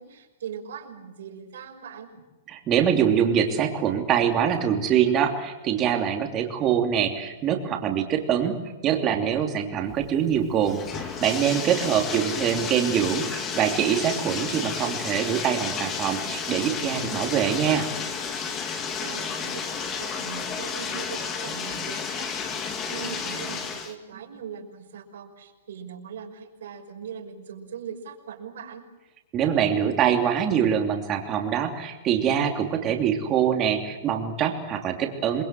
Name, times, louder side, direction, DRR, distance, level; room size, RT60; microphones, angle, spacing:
voice 1, 0.0-2.2 11.9-12.4 18.9-22.3 22.9-28.8, right 7 dB, 70° right, -1 dB, 6.0 m, -40 dB
voice 2, 2.5-8.6 8.8-17.8 29.3-35.4, right 8 dB, 20° right, 3 dB, 3.1 m, -24 dB
Bathtub (filling or washing), 9.9-23.9, left 6 dB, 20° left, 2.2 m, -32 dB
28.0 x 21.5 x 7.7 m, 1.1 s
hypercardioid pair, 165°, 0 cm